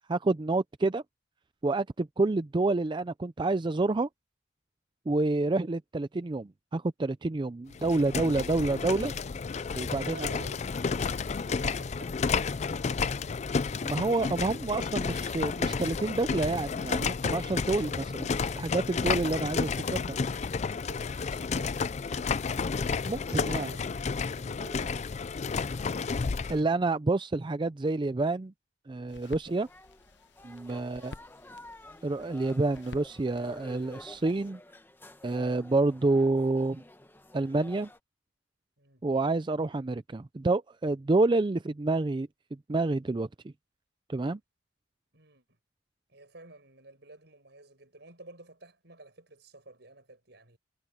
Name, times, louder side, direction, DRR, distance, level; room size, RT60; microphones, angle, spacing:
voice 1, 0.1-1.0 1.6-4.1 5.1-9.1 9.7-10.3 13.8-20.2 23.0-23.7 26.5-28.5 28.9-29.7 30.4-31.1 32.0-34.6 35.2-36.8 37.3-37.9 39.0-42.3 42.7-43.3 44.1-44.4, right 2 dB, 25° right, 0.4 m, -28 dB
sound 1, 7.7-26.6, left 5 dB, 35° left, 0.4 m, -31 dB
voice 2, 9.9-12.9 20.8-22.8 23.2-23.8 24.3-25.1 29.4-29.7 30.8-31.4 38.8-39.1 45.1-45.6 46.1-50.6, right 2 dB, 65° right, 7.8 m, -52 dB
sound 2, 29.1-34.5, left 3 dB, 65° left, 0.9 m, -51 dB
sound 3, 29.5-38.0, left 1 dB, 10° left, 1.0 m, -51 dB
head